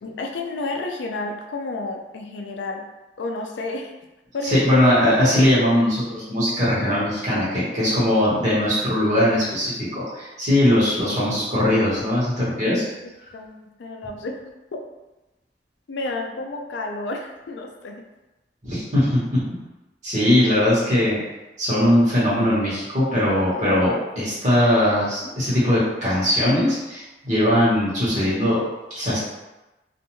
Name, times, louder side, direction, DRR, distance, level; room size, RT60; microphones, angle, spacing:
voice 1, 0.0-2.9 3.2-3.9 4.3-4.6 13.3-14.4 14.7-14.8 15.9-18.1, left 2 dB, 90° left, 2 dB, 0.4 m, -31 dB
voice 2, 4.4-12.8 18.6-19.5 20.0-21.2 21.6-28.6 28.9-29.2, left 1 dB, 45° right, -9 dB, 1.1 m, -20 dB
2.5 x 2.2 x 3.0 m, 1.0 s
head